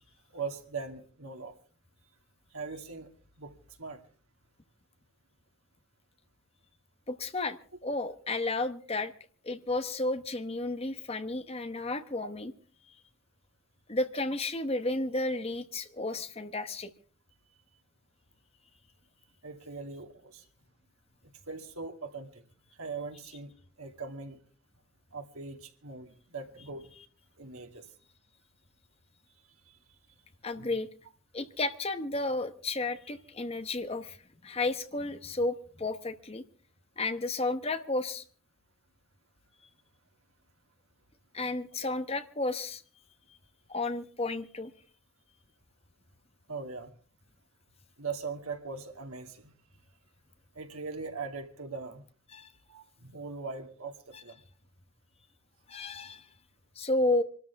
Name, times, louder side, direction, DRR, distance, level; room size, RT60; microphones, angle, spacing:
voice 1, 0.3-1.5 2.5-3.1 3.4-3.5 3.8-4.0 19.4-20.4 21.5-22.4 22.8-23.5 23.8-24.4 25.1-26.9 27.4-27.9 29.7-29.8 30.6-30.7 41.8-41.9 46.5-46.9 48.0-49.5 50.5-52.0 52.7-54.4, right 4 dB, 85° right, 4 dB, 2.4 m, -40 dB
voice 2, 7.1-7.6 7.8-9.1 9.4-12.5 13.9-16.9 30.4-30.9 31.3-34.2 34.4-36.4 37.0-38.2 41.3-42.8 43.7-44.7 52.3-52.5 54.1-54.2 55.7-56.3 56.8-57.2, left 2 dB, 25° left, 10 dB, 1.0 m, -32 dB
26.5 x 13.0 x 3.5 m, 0.41 s
head